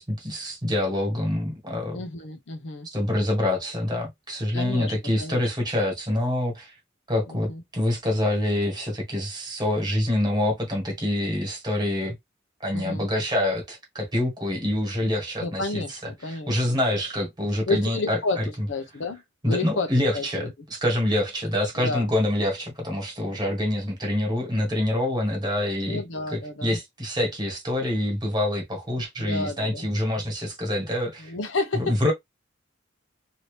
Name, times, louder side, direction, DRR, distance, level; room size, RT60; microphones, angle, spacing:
voice 1, 0.0-2.0 2.9-6.7 7.1-12.2 12.6-16.0 16.3-18.5 19.4-26.0 26.3-31.3 31.7-32.1, left 1 dB, 20° right, 1.5 m, -26 dB
voice 2, 1.9-2.9 4.5-5.5 7.3-7.6 12.7-13.1 15.4-16.8 17.7-20.5 21.8-22.1 25.8-26.8 29.2-29.9 31.2-32.0, left 3 dB, 65° left, 0.7 m, -31 dB
2.8 x 2.7 x 3.3 m
head